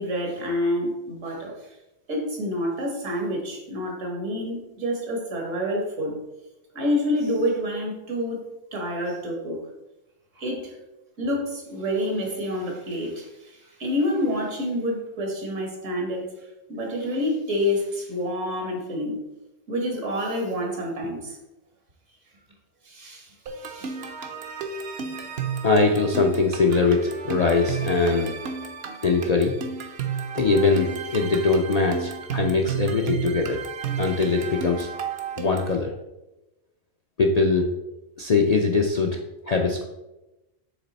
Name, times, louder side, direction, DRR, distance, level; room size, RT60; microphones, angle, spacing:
voice 1, 0.0-1.7 2.1-6.2 6.7-8.4 8.7-9.6 10.4-10.8 11.2-16.3 16.7-19.2 19.7-21.4 22.8-24.0, left 1 dB, 75° right, 0 dB, 1.8 m, -28 dB
sound 1, 23.5-35.8, right 6 dB, 60° right, 0.8 m, -32 dB
voice 2, 25.6-28.4 29.0-29.5 30.3-33.6 34.0-34.9 35.4-35.9 37.2-37.7 38.2-39.9, left 4 dB, 55° left, 1 dB, 0.4 m, -22 dB
7.2 x 3.3 x 4.1 m, 0.97 s
omnidirectional pair, 1.3 m